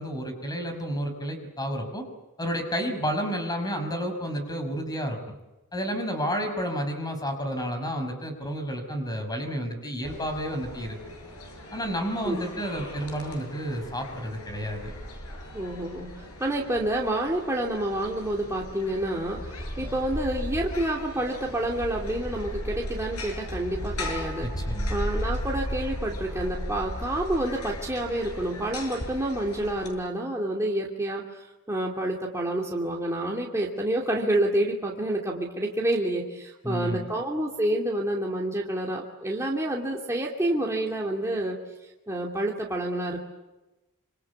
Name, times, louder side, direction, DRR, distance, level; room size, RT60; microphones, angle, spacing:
voice 1, 0.0-2.1 2.4-5.4 5.7-11.0 11.7-14.9 24.4-25.0 36.6-37.1, equal, 20° left, 6 dB, 5.5 m, -31 dB
sound 1, 10.0-29.9, equal, 85° left, 7.5 m, -36 dB
voice 2, 15.5-24.5 24.9-41.6 41.8-43.2, right 1 dB, 15° right, -2 dB, 2.8 m, -28 dB
27.0 x 26.0 x 8.3 m, 1.1 s
head